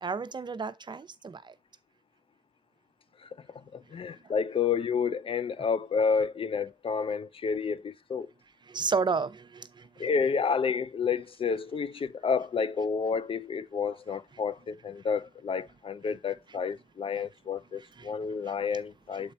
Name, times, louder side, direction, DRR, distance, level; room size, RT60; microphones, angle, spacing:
voice 1, 0.0-1.5 8.7-10.1 17.2-17.3 18.0-18.1 18.4-18.5, right 5 dB, 45° right, 0.7 m, -32 dB
voice 2, 3.7-8.3 10.0-19.3, left 5 dB, 55° left, 0.5 m, -30 dB
7.2 x 4.2 x 4.1 m
cardioid pair, 55°, 11 cm